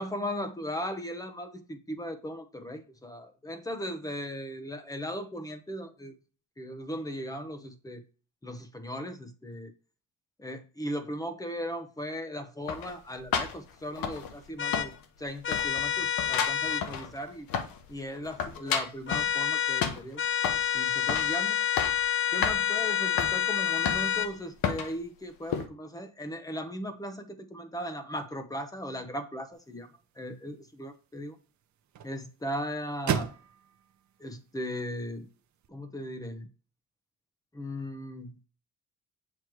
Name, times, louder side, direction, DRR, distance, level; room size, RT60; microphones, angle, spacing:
voice 1, 0.0-6.1 6.6-8.0 8.4-9.7 10.4-14.9 15.2-17.5 17.9-20.2 20.7-21.6 22.3-29.9 30.2-31.4 32.0-33.3 34.2-35.3 35.7-36.5 37.5-38.4, equal, 10° left, 7 dB, 1.0 m, -37 dB
sound 1, 12.7-14.5 14.7-15.2 15.5-17.9 18.2-19.3 19.8-20.7 21.1-21.3 21.6-22.1 22.4-22.6 23.2-23.4 23.9-24.3 24.6-24.9 25.5-25.7, left 7 dB, 90° left, 1.1 m, -32 dB
sound 2, 14.6-14.9 15.4-16.9 19.1-19.9 20.2-24.3, left 9 dB, 35° left, 0.7 m, -28 dB
sound 3, 29.5-35.7, right 8 dB, 55° right, 0.8 m, -39 dB
7.9 x 3.2 x 4.7 m, 0.36 s
cardioid pair, 115°, 34 cm